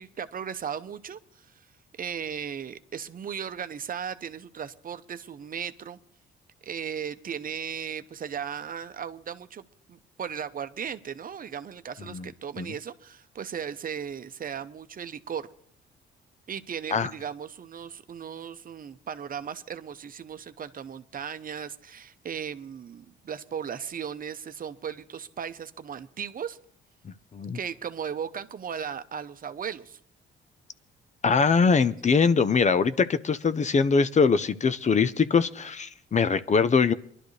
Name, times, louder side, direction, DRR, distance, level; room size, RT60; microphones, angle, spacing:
voice 1, 0.0-1.5 1.9-6.0 6.6-9.6 9.9-15.5 16.5-26.6 27.5-30.0, right 7 dB, 45° right, 11 dB, 0.8 m, -36 dB
voice 2, 31.2-36.9, left 5 dB, 35° left, 14 dB, 0.7 m, -22 dB
22.0 x 12.0 x 3.2 m, 0.64 s
cardioid pair, 90°, 20 cm